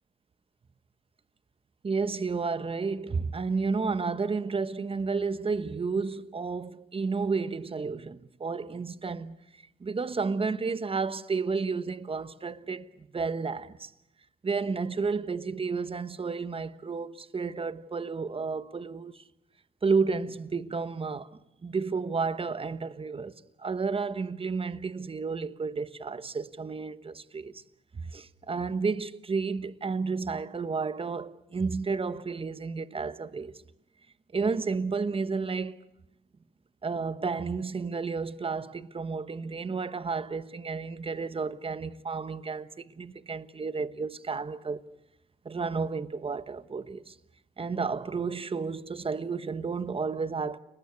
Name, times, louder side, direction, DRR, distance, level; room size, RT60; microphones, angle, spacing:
voice 1, 1.8-9.4 9.8-13.9 14.4-19.2 19.8-21.3 21.6-23.3 23.6-27.6 27.9-33.6 34.3-35.8 36.8-44.8 45.4-47.1 47.6-50.6, right 4 dB, 30° right, 1.1 m, -31 dB
29.5 x 19.5 x 9.6 m
cardioid pair, 90°, 20 cm